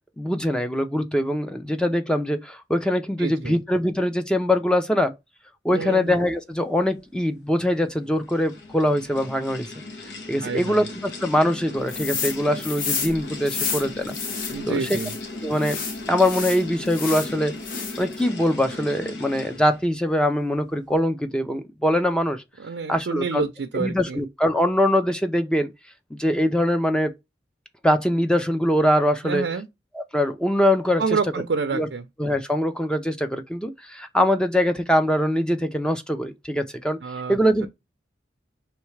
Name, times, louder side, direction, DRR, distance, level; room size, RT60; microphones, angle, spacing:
voice 1, 0.2-5.1 5.6-9.7 10.3-14.2 14.7-15.0 15.4-15.8 16.1-17.5 18.0-22.4 22.9-23.4 23.7-25.7 26.1-27.1 27.8-29.5 30.0-31.0 31.7-31.9 32.2-37.0 37.3-37.7, equal, 5° left, 0.5 m, -23 dB
voice 2, 3.2-3.6 5.7-6.1 10.4-10.8 14.5-15.1 22.6-24.2 29.2-29.7 31.0-32.1 37.0-37.7, right 5 dB, 80° right, 0.5 m, -28 dB
sound 1, 7.7-19.9, left 2 dB, 85° left, 1.1 m, -37 dB
sound 2, 11.9-12.4 12.6-15.2 15.6-17.3 17.6-18.1, left 5 dB, 50° left, 0.8 m, -30 dB
4.6 x 3.2 x 3.1 m
head